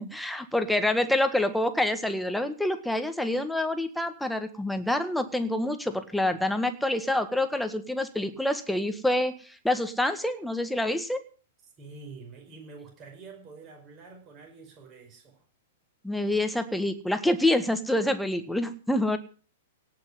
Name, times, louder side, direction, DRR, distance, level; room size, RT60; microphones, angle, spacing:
voice 1, 0.0-11.2 16.0-19.2, left 1 dB, ahead, 8 dB, 1.6 m, -27 dB
voice 2, 11.8-15.4, right 4 dB, 30° right, 1 dB, 5.1 m, -47 dB
17.5 x 6.2 x 9.4 m, 0.40 s
figure-of-eight pair, 105°, 0 cm